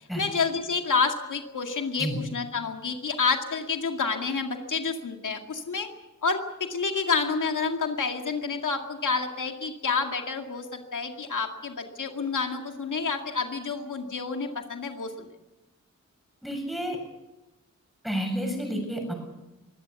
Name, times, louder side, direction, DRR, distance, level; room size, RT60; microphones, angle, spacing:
voice 1, 0.2-5.9 6.2-15.1, left 5 dB, 90° left, 4 dB, 2.2 m, -29 dB
voice 2, 16.4-17.0 18.0-19.1, equal, ahead, 3 dB, 7.6 m, -30 dB
23.0 x 17.5 x 8.3 m, 1.0 s
wide cardioid pair, 115°, 30 cm